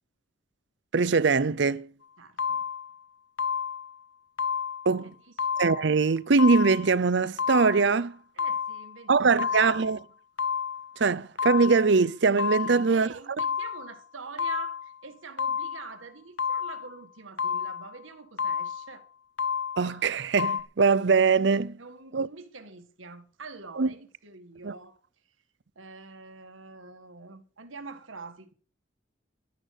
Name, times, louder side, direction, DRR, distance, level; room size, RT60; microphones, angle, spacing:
voice 1, 0.9-1.9 4.9-5.1 5.6-8.2 9.1-10.0 11.0-13.1 19.8-21.8 22.1-22.3 23.8-23.9 24.6-24.7, right 4 dB, 60° right, 0.6 m, -22 dB
voice 2, 2.2-2.7 5.0-5.5 8.3-9.6 12.6-19.1 21.8-25.3 25.7-28.5, right 4 dB, 85° right, 1.6 m, -46 dB
sound 1, 2.4-3.0 3.4-4.0 4.4-5.0 5.4-6.0 6.4-7.0 7.4-8.0 8.4-9.0 9.4-10.0 10.4-11.0 11.4-12.0 12.4-13.0 13.4-14.0 14.4-15.0 15.4-16.0 16.4-17.0 17.4-18.0 18.4-19.0 19.4-20.0 20.4-20.6, left 6 dB, 70° left, 1.2 m, -30 dB
11.5 x 10.5 x 6.5 m
head